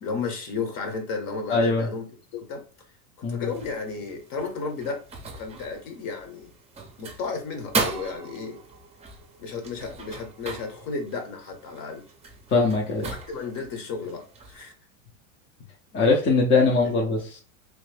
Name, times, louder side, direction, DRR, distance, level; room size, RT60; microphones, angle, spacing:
voice 1, 0.0-2.0 2.3-2.6 3.3-5.0 5.4-6.5 7.0-8.6 9.4-12.0 12.9-14.7, left 4 dB, 50° left, 5 dB, 1.2 m, -33 dB
voice 2, 1.5-1.9 3.2-3.5 12.5-13.1 15.9-17.4, left 3 dB, 30° left, 0 dB, 0.7 m, -21 dB
sound 1, 3.5-14.7, right 4 dB, 15° right, 0.7 m, -37 dB
3.1 x 2.5 x 3.4 m, 0.37 s
hypercardioid pair, 110°, 43 cm